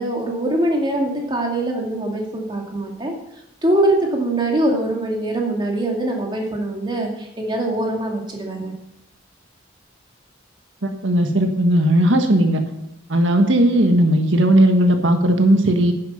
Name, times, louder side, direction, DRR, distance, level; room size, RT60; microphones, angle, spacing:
voice 1, 0.0-3.1 3.6-8.7, right 1 dB, 25° right, 1 dB, 2.3 m, -22 dB
voice 2, 10.8-12.6 13.1-15.9, right 1 dB, 85° right, 5 dB, 1.6 m, -16 dB
10.5 x 10.5 x 5.8 m, 0.85 s
head